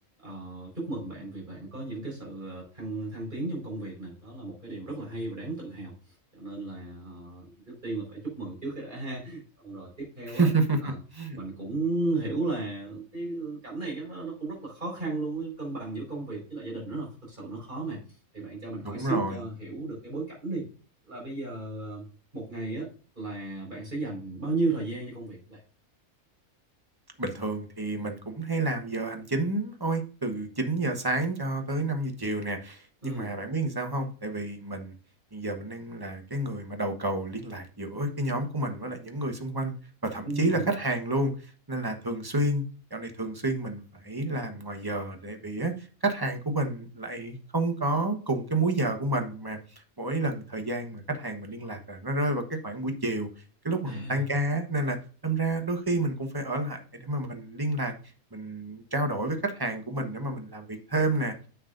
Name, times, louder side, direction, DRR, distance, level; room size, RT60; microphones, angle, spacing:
voice 1, 0.2-10.5 10.8-10.9 11.3-18.0 18.3-20.7 21.1-22.1 22.3-22.9 23.1-25.6 33.0-33.3 40.2-40.7 53.8-54.2, right 2 dB, 35° right, -3 dB, 5.1 m, -34 dB
voice 2, 10.3-11.4 18.8-19.4 27.2-34.9 35.3-39.7 40.0-42.6 42.9-53.3 53.6-55.0 55.2-57.9 58.3-61.3, right 2 dB, 20° right, 5 dB, 1.0 m, -30 dB
9.7 x 7.0 x 2.6 m, 0.38 s
omnidirectional pair, 1.5 m